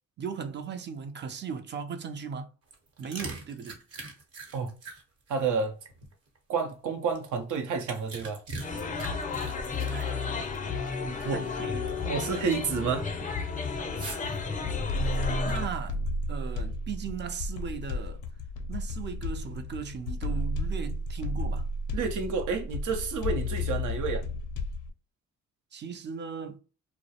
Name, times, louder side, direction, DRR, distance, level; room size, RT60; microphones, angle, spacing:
voice 1, 0.2-2.5 3.0-3.8 9.8-10.3 11.0-12.0 15.4-16.0 16.3-18.2 18.7-21.7 25.7-26.6, right 6 dB, 35° right, 0.4 m, -37 dB
sound 1, 2.6-6.6 7.1-10.6 10.9-11.0 11.5-12.1 12.5-12.8 14.0-14.4 15.0-15.9, right 3 dB, 55° right, 0.9 m, -42 dB
voice 2, 5.3-5.8 6.5-8.4 11.2-11.4 12.0-13.1 21.9-24.2, right 5 dB, 80° right, 0.6 m, -30 dB
sound 2, 8.6-15.7, left 5 dB, 25° left, 0.4 m, -32 dB
sound 3, 14.2-24.9, left 1 dB, 85° left, 0.5 m, -33 dB
2.3 x 2.0 x 2.7 m
cardioid pair, 90°, 30 cm